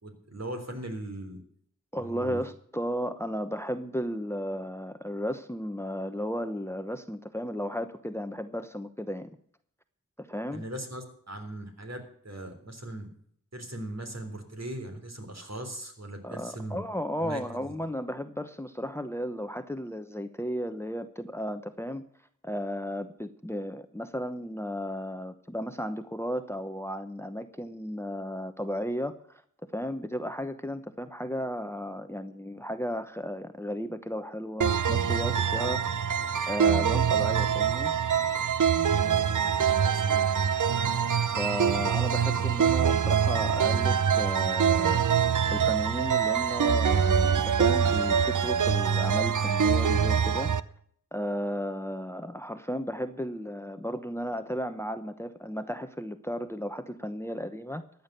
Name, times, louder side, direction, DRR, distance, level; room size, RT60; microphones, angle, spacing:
voice 1, 0.0-1.4 2.0-2.4 10.5-13.1 13.5-16.8 17.2-17.7 39.0-40.2, right 1 dB, 55° right, 5 dB, 3.6 m, -39 dB
voice 2, 1.9-9.3 10.2-10.6 16.2-22.0 22.4-29.4 29.7-35.8 36.5-37.9 40.8-41.1 41.3-45.1 45.5-50.5 51.1-58.0, equal, 10° left, 10 dB, 0.9 m, -34 dB
sound 1, 34.6-50.6, right 7 dB, 70° right, 0.7 m, -24 dB
14.5 x 9.6 x 6.8 m, 0.62 s
wide cardioid pair, 50°, 32 cm